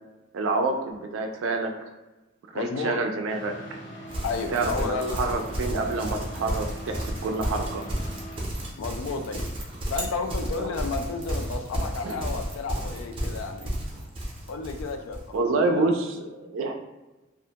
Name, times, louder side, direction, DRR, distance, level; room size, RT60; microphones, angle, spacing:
voice 1, 0.3-1.9 2.5-3.8 4.5-4.9 5.1-7.8 12.0-12.2 15.3-16.7, right 3 dB, 80° right, 4 dB, 0.3 m, -27 dB
voice 2, 2.5-3.1 4.2-5.2 8.8-9.5 9.9-13.8 14.5-15.9, left 4 dB, 90° left, 6 dB, 0.3 m, -32 dB
sound 1, 3.3-8.4, equal, 65° left, 0.9 m, -42 dB
Livestock farm animals working animals, 4.1-15.3, right 1 dB, 25° right, 0.5 m, -32 dB
2.4 x 2.1 x 2.8 m, 1.1 s
head